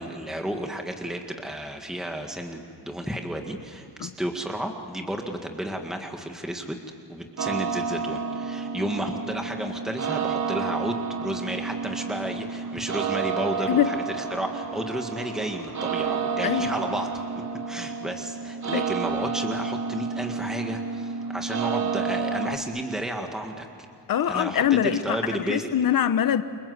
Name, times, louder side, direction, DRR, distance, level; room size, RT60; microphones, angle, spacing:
voice 1, 0.0-6.8 7.1-17.2 17.7-23.7 24.3-25.7, right 1 dB, ahead, 3 dB, 1.9 m, -32 dB
sound 1, 7.4-22.6, right 5 dB, 40° right, 1.5 m, -30 dB
voice 2, 24.1-26.4, left 9 dB, 50° left, 11 dB, 1.0 m, -23 dB
29.5 x 24.5 x 8.1 m, 2.7 s
wide cardioid pair, 130°, 43 cm